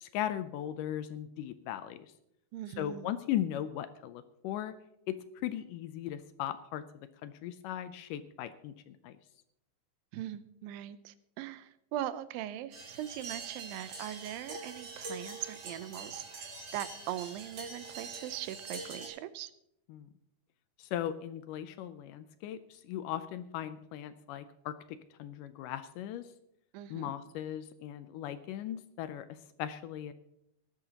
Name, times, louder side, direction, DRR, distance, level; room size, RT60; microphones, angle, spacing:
voice 1, 0.0-2.1 2.8-4.7 5.1-6.8 7.2-9.1 19.9-20.1 20.8-26.2 26.9-30.1, left 11 dB, 80° left, 12 dB, 1.9 m, -38 dB
voice 2, 2.5-3.1 10.1-19.5 26.7-27.1, right 12 dB, 80° right, 13 dB, 2.4 m, -40 dB
sound 1, 12.7-19.1, right 3 dB, 45° right, 3.3 m, -44 dB
19.0 x 11.0 x 2.9 m, 0.79 s
omnidirectional pair, 4.2 m